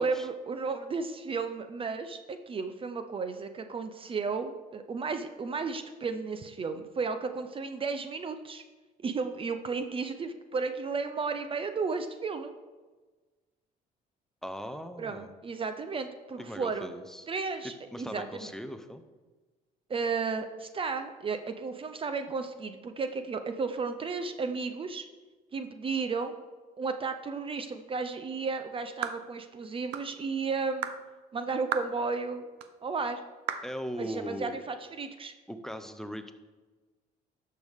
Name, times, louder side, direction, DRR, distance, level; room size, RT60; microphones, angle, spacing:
voice 1, 0.0-8.6 9.0-12.5 15.0-16.9 17.3-18.5 19.9-25.1 25.5-26.4 26.8-30.9 31.3-32.5 32.8-33.2 34.0-35.3, right 4 dB, 30° right, 9 dB, 0.6 m, -33 dB
voice 2, 14.4-15.3 16.4-17.3 17.6-19.0 33.6-34.6 35.5-36.3, equal, 5° left, 8 dB, 0.7 m, -39 dB
sound 1, 29.0-29.2 29.9-30.1 30.8-31.0 31.7-31.9 32.6-32.7 33.5-33.7, right 9 dB, 90° right, 0.6 m, -34 dB
11.5 x 6.6 x 3.6 m, 1.3 s
cardioid pair, 110°, 17 cm